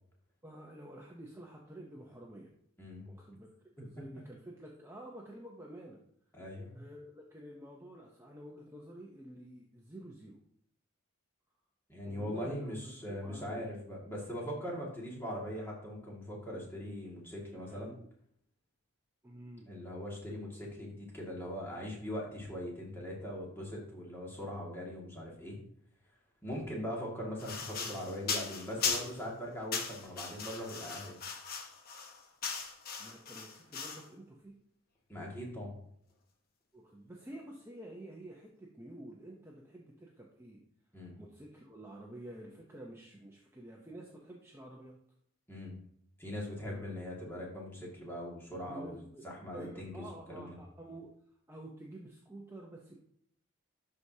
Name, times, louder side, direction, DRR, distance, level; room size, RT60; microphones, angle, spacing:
voice 1, 0.4-2.5 3.1-3.5 3.8-6.0 6.7-10.4 12.1-13.7 17.6-18.1 19.2-19.7 33.0-34.5 36.7-40.6 41.2-45.0 46.7-46.8 48.7-49.2 49.5-51.1 51.5-53.0, right 1 dB, 10° right, -2 dB, 0.7 m, -49 dB
voice 2, 2.8-3.1 6.3-6.8 11.9-17.9 19.7-25.6 26.4-31.2 35.1-35.7 40.9-41.1 45.5-45.7 46.2-50.6, equal, 10° left, -3 dB, 2.0 m, -41 dB
sound 1, 27.4-29.3 29.7-34.1, left 5 dB, 45° left, 1.0 m, -38 dB
12.0 x 4.7 x 2.8 m, 0.68 s
head